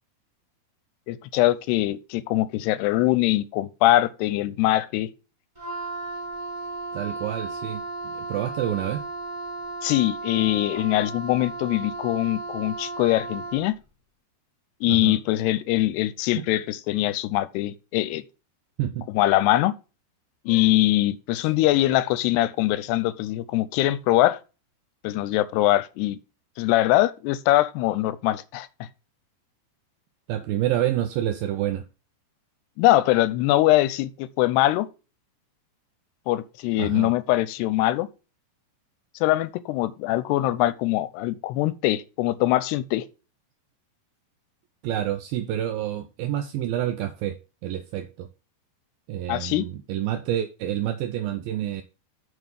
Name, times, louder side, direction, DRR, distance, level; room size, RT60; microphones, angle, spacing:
voice 1, 1.1-5.1 9.8-13.7 14.8-18.2 19.1-19.7 20.5-24.4 25.0-26.2 26.6-28.9 32.8-34.9 36.3-38.1 39.2-43.1 49.3-49.7, left 15 dB, 80° left, 2.6 m, -22 dB
Wind instrument woodwind instrument, 5.5-13.7, right 3 dB, 20° right, 0.8 m, -35 dB
voice 2, 6.9-9.0 14.9-15.2 16.4-16.5 18.8-19.1 30.3-31.9 36.8-37.1 44.8-48.3 49.1-51.8, right 12 dB, 85° right, 2.0 m, -28 dB
7.1 x 6.5 x 5.5 m
omnidirectional pair, 5.0 m